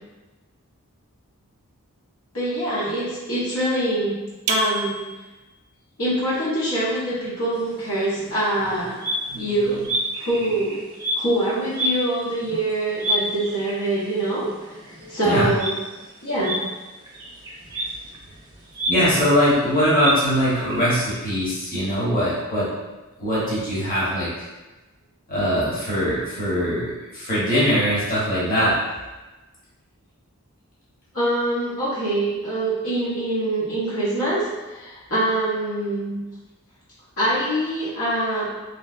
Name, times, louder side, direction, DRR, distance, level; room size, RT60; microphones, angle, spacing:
voice 1, 2.3-4.1 4.5-5.0 6.0-9.0 9.3-9.8 10.2-10.8 11.1-14.5 15.1-15.8 16.2-16.6 31.1-36.2 37.2-38.5, right 1 dB, 65° left, -10 dB, 1.0 m, -24 dB
sound 1, 4.5-5.6, right 3 dB, 75° right, 0.4 m, -28 dB
sound 2, 7.5-20.8, equal, 20° right, 0.8 m, -31 dB
voice 2, 15.0-15.5 18.9-22.7 23.2-24.5 25.3-28.8, equal, 40° left, -9 dB, 1.2 m, -22 dB
3.2 x 3.1 x 2.5 m, 1.1 s
head